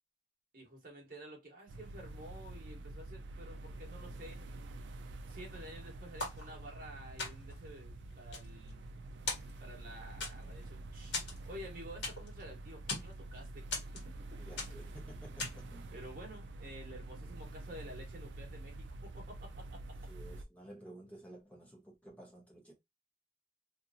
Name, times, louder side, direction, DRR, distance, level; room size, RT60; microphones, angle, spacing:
voice 1, 0.5-4.4 5.3-8.8 9.6-11.2 11.5-13.7 14.0-14.1 15.9-19.5, equal, 50° right, 1.0 m, -51 dB
sound 1, 1.7-20.4, right 2 dB, 80° right, 0.4 m, -47 dB
sound 2, 6.2-6.9 7.2-7.7 8.1-9.0 9.3-9.8 10.2-10.7 11.1-12.4 12.7-13.2 13.7-14.2 14.6-14.9 15.4-15.7, left 3 dB, 85° left, 1.3 m, -40 dB
voice 2, 14.4-16.0 20.1-22.7, right 1 dB, 10° left, 0.9 m, -53 dB
2.8 x 2.5 x 2.5 m
head